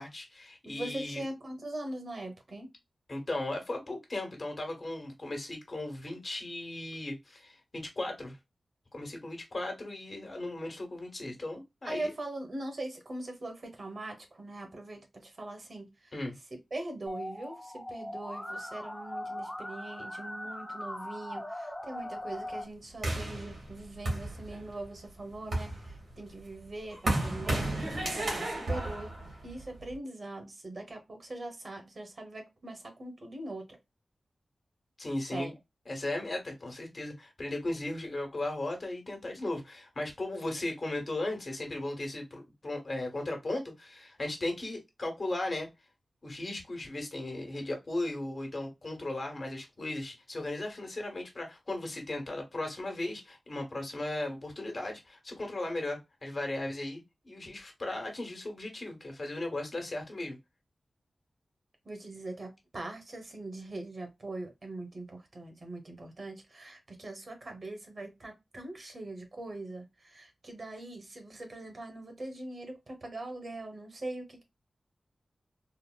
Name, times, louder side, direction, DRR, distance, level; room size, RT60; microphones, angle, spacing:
voice 1, 0.0-1.2 3.1-8.4 8.9-12.1 16.1-16.3 35.0-35.5 35.9-45.7 46.2-60.4, left 2 dB, 50° left, 1.2 m, -36 dB
voice 2, 0.6-2.7 11.8-15.9 16.7-27.7 28.1-29.1 29.4-33.6 35.3-35.5 61.9-74.4, right 2 dB, 55° right, 1.0 m, -41 dB
Musical instrument, 17.1-22.6, left 1 dB, 10° left, 0.7 m, -40 dB
sound 1, 23.0-24.8 25.3-29.9, right 1 dB, 90° right, 1.9 m, -33 dB
3.9 x 2.0 x 2.2 m
wide cardioid pair, 90°, 0 cm